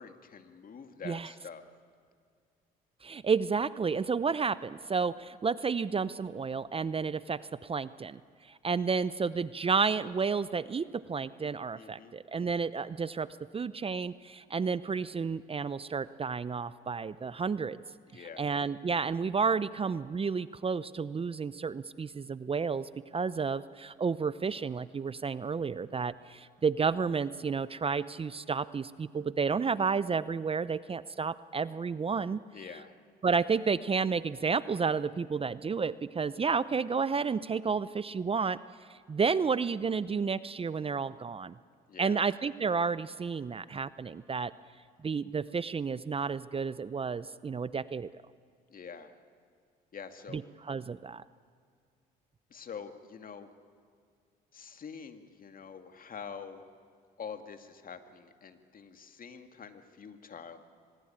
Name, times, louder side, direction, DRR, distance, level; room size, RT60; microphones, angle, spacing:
voice 1, 0.0-1.6 11.8-12.1 18.1-18.5 32.5-32.9 41.9-42.2 48.7-49.1 49.9-50.4 52.5-53.5 54.5-56.6 57.2-60.6, left 6 dB, 45° left, 8 dB, 2.2 m, -46 dB
voice 2, 3.0-8.2 8.5-13.3 13.5-17.8 18.1-32.4 33.2-38.6 39.1-41.5 42.0-44.5 45.0-48.1 50.3-51.2, right 5 dB, 30° right, 16 dB, 0.7 m, -31 dB
25.5 x 21.0 x 8.8 m, 2.1 s
supercardioid pair, 65°, 19 cm